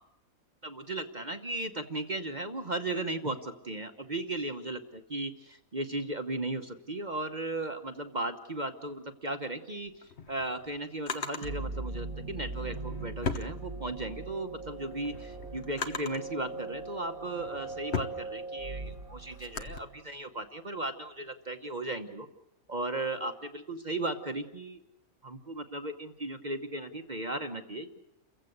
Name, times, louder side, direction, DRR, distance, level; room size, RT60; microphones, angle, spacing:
voice 1, 0.6-5.3 5.7-9.9 10.3-15.1 15.5-22.3 22.7-24.8 25.2-27.9, right 2 dB, 35° right, 6 dB, 1.1 m, -36 dB
Drawer open or close, 9.9-11.5 12.5-14.2 14.6-16.3 17.0-19.8, left 5 dB, 50° left, 1.3 m, -38 dB
sound 1, 11.4-20.0, right 3 dB, 80° right, 2.3 m, -40 dB
29.0 x 15.5 x 8.1 m, 0.86 s
omnidirectional pair, 1.5 m